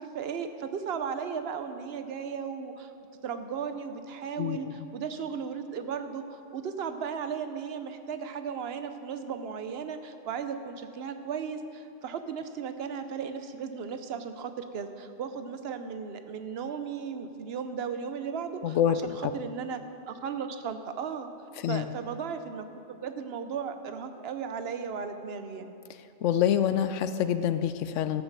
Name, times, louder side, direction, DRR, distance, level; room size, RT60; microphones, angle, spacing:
voice 1, 0.0-2.9 3.2-18.8 19.2-19.8 20.1-21.3 21.7-25.8, right 6 dB, 60° right, 9 dB, 0.9 m, -36 dB
voice 2, 4.4-4.9 18.6-19.3 21.6-21.9 26.2-28.2, left 9 dB, 80° left, 12 dB, 0.9 m, -27 dB
13.0 x 7.2 x 6.6 m, 2.7 s
omnidirectional pair, 1.3 m